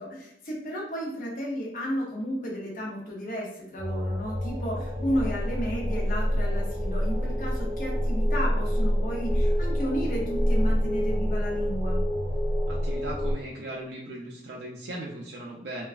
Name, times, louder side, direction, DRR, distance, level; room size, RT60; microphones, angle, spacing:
voice 1, 0.0-12.0, equal, 50° left, -2 dB, 0.6 m, -33 dB
sound 1, 3.8-13.3, equal, 10° right, 0.6 m, -27 dB
voice 2, 12.7-15.8, right 1 dB, 60° right, -2 dB, 0.4 m, -38 dB
3.1 x 2.3 x 2.4 m, 0.78 s
head